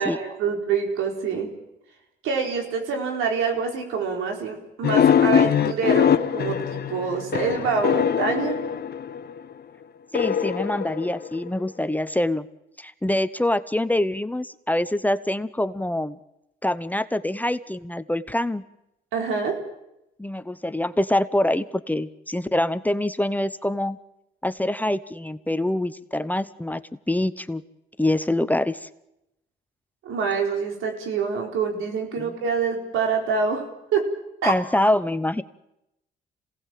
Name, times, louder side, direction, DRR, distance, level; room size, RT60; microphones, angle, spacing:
voice 1, 0.0-1.5 2.2-8.6 19.1-19.6 30.0-33.6 33.9-34.1 34.4-34.5, right 5 dB, 90° right, 2 dB, 4.3 m, -26 dB
sound 1, 4.8-9.4 10.1-11.7, left 8 dB, 55° left, 1.2 m, -22 dB
voice 2, 10.1-12.5 12.8-16.2 16.6-18.6 20.2-24.0 24.4-26.8 27.1-27.6 28.0-28.9 32.2-32.3 34.5-35.4, left 1 dB, 10° left, 13 dB, 0.9 m, -25 dB
27.0 x 18.0 x 7.6 m, 0.88 s
cardioid pair, 90°, 20 cm